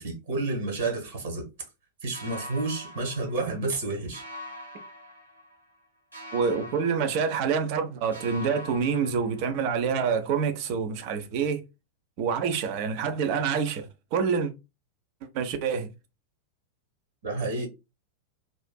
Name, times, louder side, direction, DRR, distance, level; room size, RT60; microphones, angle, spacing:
voice 1, 0.0-1.4 2.0-4.2 17.2-17.7, right 3 dB, 60° right, 1.4 m, -30 dB
sound 1, 2.1-3.8 4.1-5.8 6.1-7.8 8.1-9.8, left 1 dB, 85° right, 1.8 m, -44 dB
voice 2, 6.3-11.6 12.2-14.5 15.2-15.9, right 6 dB, 45° right, 0.6 m, -27 dB
3.6 x 2.5 x 2.2 m
figure-of-eight pair, 90°, 0 cm